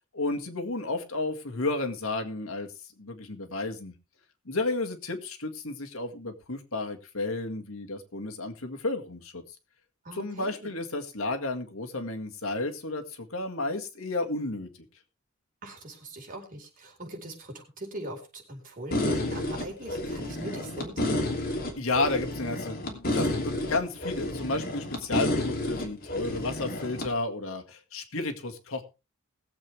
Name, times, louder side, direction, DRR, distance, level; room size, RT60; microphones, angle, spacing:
voice 1, 0.1-2.7 3.0-3.9 4.5-9.4 10.1-14.7 21.8-28.8, left 2 dB, 85° left, 5 dB, 1.9 m, -32 dB
voice 2, 10.0-10.7 15.6-21.0, right 1 dB, 40° right, 0 dB, 4.5 m, -40 dB
sound 1, 18.9-27.1, left 1 dB, 45° left, 2.9 m, -30 dB
20.5 x 7.8 x 3.4 m, 0.29 s
head